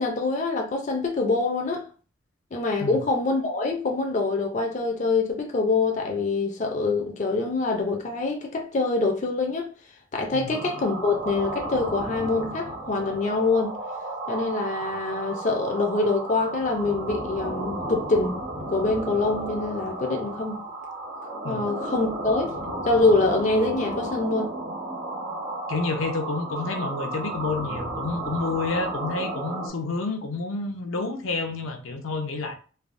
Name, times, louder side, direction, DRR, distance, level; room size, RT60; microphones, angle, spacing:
voice 1, 0.0-1.9 2.5-9.7 10.1-13.8 14.3-18.4 18.7-20.6 21.4-22.5 22.8-24.5, left 3 dB, 35° left, 0.4 m, -25 dB
sound 1, 10.5-29.7, right 1 dB, 55° right, 0.9 m, -33 dB
voice 2, 25.7-32.5, left 3 dB, 90° left, 0.5 m, -29 dB
3.2 x 2.0 x 2.5 m
head